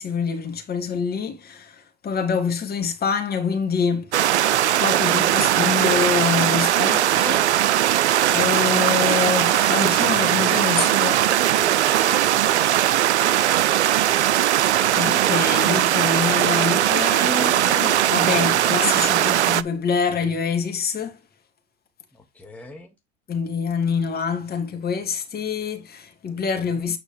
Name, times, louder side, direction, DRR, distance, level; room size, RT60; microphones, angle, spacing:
voice 1, 0.0-4.1 4.8-8.0 8.3-11.1 14.7-21.2 23.3-27.0, left 6 dB, 30° left, 2.7 m, -26 dB
sound 1, 4.1-19.6, right 12 dB, 85° right, 0.6 m, -19 dB
voice 2, 10.5-10.9 11.2-13.3 22.1-22.9 26.6-26.9, left 3 dB, 5° left, 2.0 m, -41 dB
9.3 x 4.8 x 3.4 m
hypercardioid pair, 90°, 33 cm